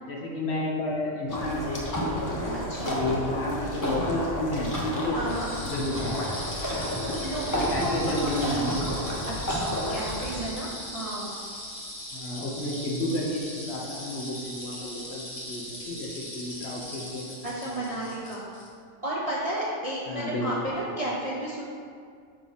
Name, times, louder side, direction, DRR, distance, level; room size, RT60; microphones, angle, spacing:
voice 1, 0.1-2.1 2.8-5.2 5.6-6.4 6.7-7.0 7.4-8.9 12.1-17.7 18.0-18.1 20.1-20.7, left 1 dB, 55° left, -3 dB, 1.1 m, -31 dB
sound 1, 1.3-10.4, equal, 20° left, 0.7 m, -31 dB
voice 2, 2.5-3.0 5.1-5.5 7.2-8.3 9.3-11.4 17.4-18.5 19.0-21.6, right 1 dB, 35° right, -6 dB, 0.6 m, -32 dB
sound 2, 5.3-18.7, equal, 35° left, 1.3 m, -39 dB
5.9 x 3.0 x 5.6 m, 2.2 s
omnidirectional pair, 1.4 m